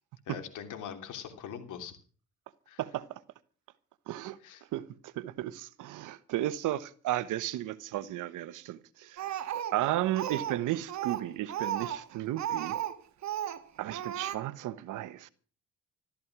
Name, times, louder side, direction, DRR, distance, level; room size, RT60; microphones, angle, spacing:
voice 1, 0.2-2.0 2.7-2.8 4.4-4.6, left 8 dB, 80° left, 3.0 m, -42 dB
voice 2, 2.8-3.2 4.1-4.4 4.7-9.3 9.7-12.8 13.8-15.3, right 14 dB, 90° right, 1.1 m, -34 dB
Speech, 9.2-10.6 10.9-13.0 13.2-13.6 13.9-14.4, right 11 dB, 65° right, 1.5 m, -34 dB
14.0 x 13.5 x 6.0 m
cardioid pair, 90°, 30 cm